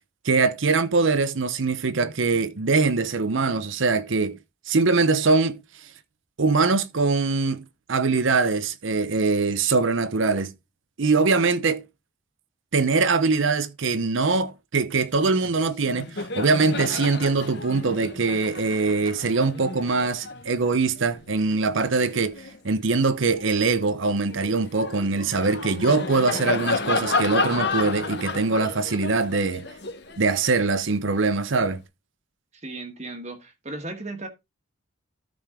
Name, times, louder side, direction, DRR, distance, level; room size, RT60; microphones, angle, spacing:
voice 1, 0.2-4.4 4.7-5.6 6.4-7.6 7.9-10.5 11.0-11.8 12.7-22.4 22.6-29.6 30.2-31.8, right 4 dB, 65° right, 0.7 m, -22 dB
Laughter, 15.4-15.6 15.9-22.6 23.1-31.3, left 3 dB, 55° left, 1.2 m, -32 dB
voice 2, 32.5-34.3, right 2 dB, 35° right, 1.4 m, -36 dB
13.0 x 5.1 x 3.7 m
head